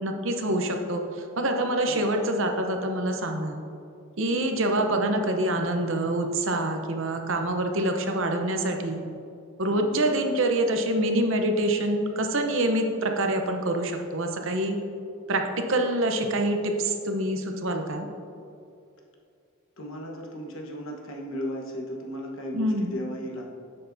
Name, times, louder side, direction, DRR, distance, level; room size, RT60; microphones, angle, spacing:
voice 1, 0.0-3.6 4.2-9.0 9.6-14.8 15.3-18.1 22.5-22.9, right 1 dB, 60° right, 4 dB, 0.8 m, -26 dB
voice 2, 9.7-10.0 19.8-23.5, equal, 65° left, 0 dB, 1.2 m, -36 dB
9.9 x 7.6 x 2.7 m, 2.6 s
head